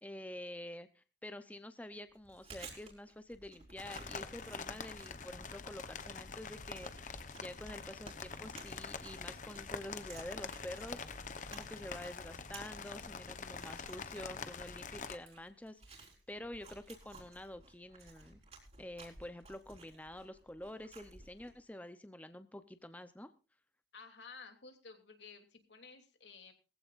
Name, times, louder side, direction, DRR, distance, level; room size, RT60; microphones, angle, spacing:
voice 1, 0.0-11.1 11.5-18.4 18.8-23.3, left 1 dB, 10° left, 10 dB, 0.7 m, -48 dB
Chewing mastication, 2.1-21.7, right 3 dB, 35° right, 4.5 m, -57 dB
sound 1, 3.8-15.2, left 5 dB, 45° left, 1.0 m, -45 dB
voice 2, 23.9-26.5, left 5 dB, 85° left, 5 dB, 2.9 m, -54 dB
20.5 x 15.0 x 2.5 m, 0.32 s
head